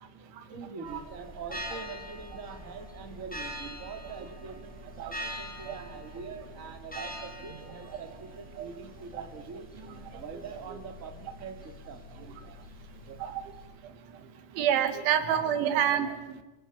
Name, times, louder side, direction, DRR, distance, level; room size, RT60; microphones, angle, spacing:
voice 1, 0.5-9.7 10.1-12.0 14.9-15.2 16.1-16.3, right 5 dB, 25° right, 6 dB, 2.2 m, -44 dB
sound 1, 0.8-13.7, equal, ahead, 5.6 m, -44 dB
voice 2, 14.6-16.4, right 9 dB, 90° right, 9 dB, 4.4 m, -28 dB
29.0 x 23.0 x 7.3 m, 1.0 s
omnidirectional pair, 5.2 m